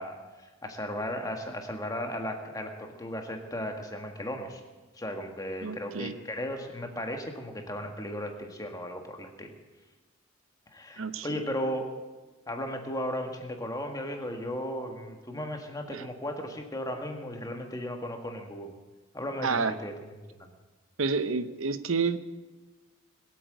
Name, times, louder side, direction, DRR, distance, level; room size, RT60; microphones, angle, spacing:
voice 1, 0.0-4.6 5.0-9.5 10.7-11.9 12.5-18.7 19.1-19.9 20.4-20.5, equal, 15° left, 4 dB, 1.7 m, -36 dB
voice 2, 5.6-6.1 11.0-11.3 15.9-16.0 19.4-19.7 21.0-22.2, right 4 dB, 70° right, 12 dB, 0.9 m, -29 dB
21.0 x 8.6 x 7.9 m, 1.3 s
head